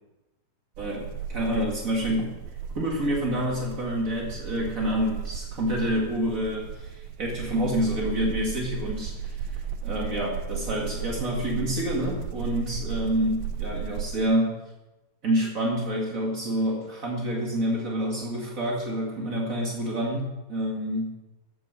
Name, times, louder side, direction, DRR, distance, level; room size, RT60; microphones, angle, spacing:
voice 1, 0.8-2.3 2.7-14.6 15.2-21.1, equal, 60° right, -2 dB, 0.8 m, -28 dB
sound 1, 0.8-14.3, right 8 dB, 75° right, 2.5 m, -35 dB
15.0 x 8.5 x 6.4 m, 1.0 s
omnidirectional pair, 4.8 m